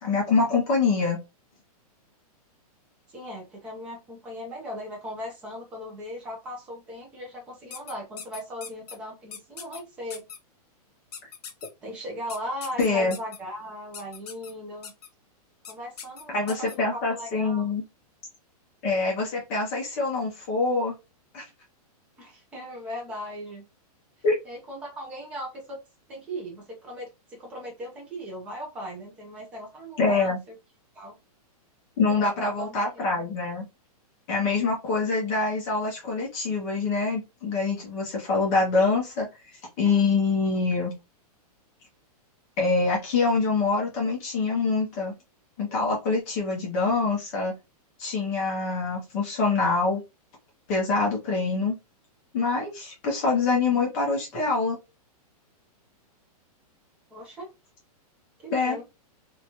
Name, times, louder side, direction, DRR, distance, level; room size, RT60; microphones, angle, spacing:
voice 1, 0.0-1.2 11.2-11.3 12.8-13.1 16.3-17.8 18.8-20.9 21.3-21.4 24.2-24.3 30.0-30.4 32.0-33.7 34.3-39.3 39.8-40.9 42.6-45.1 45.6-47.6 48.0-50.0 50.7-51.7 52.3-54.8 58.5-58.8, left 4 dB, 20° left, -1 dB, 0.7 m, -25 dB
voice 2, 3.1-10.2 11.8-14.9 15.7-17.7 22.2-23.6 24.4-25.8 26.1-30.6 30.9-31.2 32.2-33.1 57.1-57.5 58.4-58.8, equal, 5° right, -1 dB, 0.4 m, -38 dB
sound 1, 7.7-9.0 9.3-9.8 10.1-10.4 11.1-11.7 12.3-13.4 13.9-14.5 14.8-15.1 15.6-15.7 16.0-16.8, left 7 dB, 80° left, 0.8 m, -40 dB
2.8 x 2.2 x 2.8 m, 0.25 s
hypercardioid pair, 180°, 20 cm